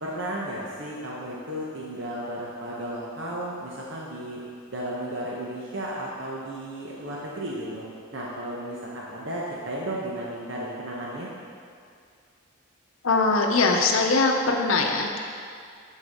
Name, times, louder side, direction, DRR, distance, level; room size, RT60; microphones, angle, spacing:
voice 1, 0.0-4.4 4.7-7.8 8.1-11.3, right 1 dB, 60° right, -5 dB, 1.0 m, -34 dB
voice 2, 13.0-15.2, left 3 dB, 80° left, 2 dB, 0.8 m, -21 dB
12.0 x 4.8 x 3.6 m, 2.3 s
head